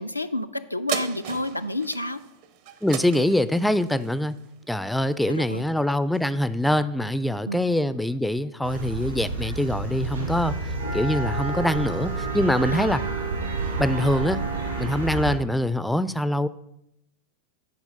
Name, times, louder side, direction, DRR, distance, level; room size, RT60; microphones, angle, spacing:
voice 1, 0.0-2.2 5.3-5.6 7.5-7.7 12.7-13.0, left 1 dB, 85° left, 8 dB, 0.4 m, -30 dB
sound 1, 0.9-5.6 6.1-6.2, right 10 dB, 50° right, 0.6 m, -37 dB
voice 2, 2.8-4.4 4.7-13.0 13.8-14.4 14.8-16.5, left 1 dB, 5° left, 15 dB, 0.3 m, -24 dB
sound 2, 8.6-15.3, right 3 dB, 80° right, 2.1 m, -29 dB
9.3 x 4.9 x 5.2 m, 0.82 s
figure-of-eight pair, 90°, 0 cm